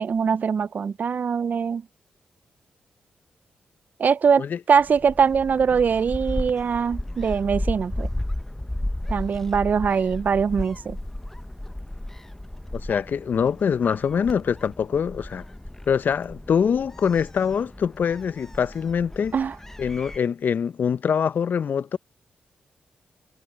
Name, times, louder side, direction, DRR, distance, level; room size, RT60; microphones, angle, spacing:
voice 1, 0.0-1.8 4.0-8.1 9.1-11.0 19.3-19.5, right 6 dB, 55° right, 0.4 m, -22 dB
Gull seagull, 4.7-20.2, left 1 dB, 10° left, 0.8 m, -34 dB
voice 2, 12.7-15.4 15.9-19.4 19.8-22.0, left 7 dB, 65° left, 0.6 m, -24 dB
supercardioid pair, 50°, 3 cm